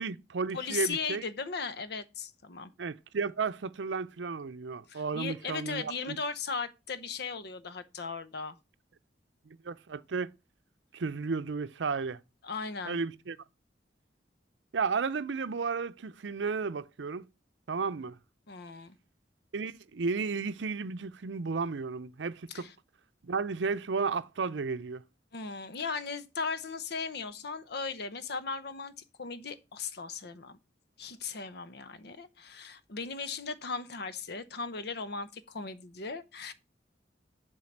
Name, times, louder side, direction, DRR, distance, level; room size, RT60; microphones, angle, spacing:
voice 1, 0.0-1.2 2.8-6.2 9.6-10.3 10.9-12.2 12.9-13.4 14.7-17.3 17.7-18.2 19.5-22.7 23.2-25.0, right 4 dB, 85° right, 0.6 m, -33 dB
voice 2, 0.5-2.7 4.9-8.6 12.4-13.0 18.5-19.0 22.5-22.7 25.3-28.9 29.2-30.6 31.0-36.5, left 5 dB, 65° left, 0.8 m, -37 dB
7.7 x 4.7 x 7.2 m
head